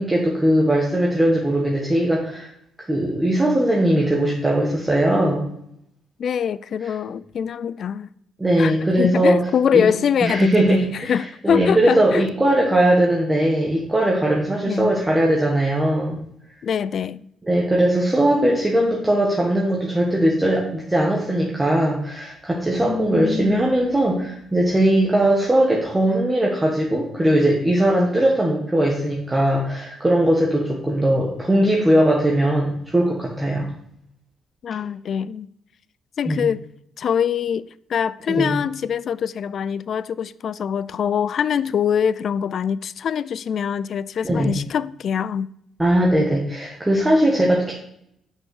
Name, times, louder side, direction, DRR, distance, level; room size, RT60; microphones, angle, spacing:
voice 1, 0.0-2.5 2.9-5.5 8.4-9.4 9.7-9.8 10.2-16.2 17.5-33.7 36.2-36.4 38.3-38.5 44.2-44.5 45.8-47.7, right 1 dB, 15° right, 1.4 m, -19 dB
voice 2, 6.2-8.1 8.6-12.3 14.6-14.9 16.6-17.3 22.8-23.7 34.6-35.5 36.2-36.6 37.0-45.5, left 7 dB, 60° left, 0.3 m, -24 dB
6.2 x 5.4 x 6.4 m
cardioid pair, 90°, 0 cm